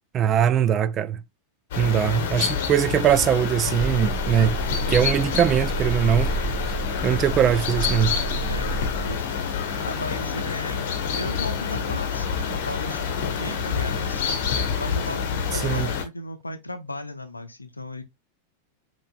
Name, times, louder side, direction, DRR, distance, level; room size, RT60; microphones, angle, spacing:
voice 1, 0.1-1.2 1.8-4.6 4.9-6.3 6.6-6.8 7.0-8.2 15.6-15.9, right 9 dB, 30° right, 0.3 m, -21 dB
sound 1, 1.7-16.0, left 6 dB, 50° left, 0.9 m, -28 dB
voice 2, 1.9-2.7 5.2-5.4 5.7-6.3 8.5-9.3 9.8-14.3 14.8-18.0, left 2 dB, 80° left, 0.6 m, -36 dB
sound 2, 3.8-9.1, right 3 dB, ahead, 2.6 m, -30 dB
5.2 x 2.9 x 2.3 m
figure-of-eight pair, 90°, 0 cm